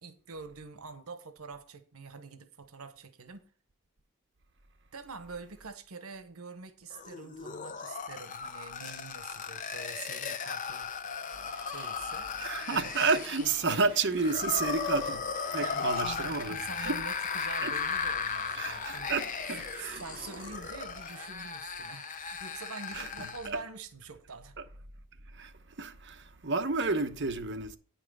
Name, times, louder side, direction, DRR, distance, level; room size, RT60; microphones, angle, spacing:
voice 1, 0.0-3.5 4.9-10.9 11.7-12.3 12.7-13.1 13.4-13.8 15.5-19.2 19.8-24.6, right 4 dB, 90° right, 1.0 m, -45 dB
sound 1, 6.9-23.5, left 6 dB, 35° left, 0.7 m, -36 dB
sound 2, 11.3-21.3, right 1 dB, 10° right, 4.1 m, -52 dB
voice 2, 12.4-17.0 17.6-17.7 18.5-20.0 22.9-23.6 25.3-27.8, right 4 dB, 55° right, 1.0 m, -31 dB
9.5 x 5.8 x 5.5 m
head